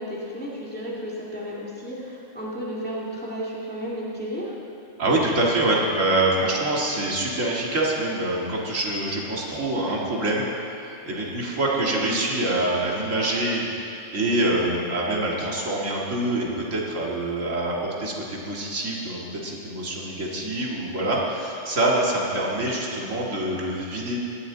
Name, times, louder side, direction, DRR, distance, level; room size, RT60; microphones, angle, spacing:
voice 1, 0.0-4.6 11.8-11.9, equal, 10° left, -6 dB, 2.2 m, -33 dB
voice 2, 5.0-10.5 10.8-24.2, right 1 dB, 90° right, -3 dB, 2.4 m, -25 dB
18.5 x 13.0 x 4.0 m, 2.7 s
omnidirectional pair, 1.3 m